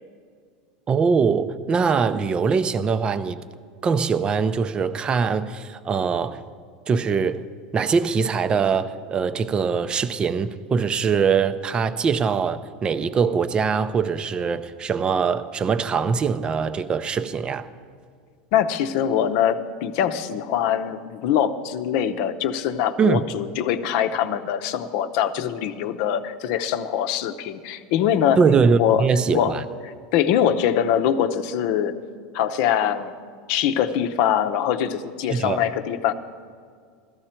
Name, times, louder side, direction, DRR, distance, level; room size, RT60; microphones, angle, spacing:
voice 1, 0.9-3.4 3.8-6.4 6.9-7.4 7.7-17.7 23.0-23.3 28.4-29.6 35.3-35.6, right 5 dB, 25° right, 0.5 m, -22 dB
voice 2, 18.5-28.4 28.8-29.0 29.3-29.5 29.8-31.9 32.3-33.1 33.5-36.1, left 9 dB, 60° left, 0.8 m, -23 dB
16.0 x 13.5 x 4.4 m
supercardioid pair, 135°, 4 cm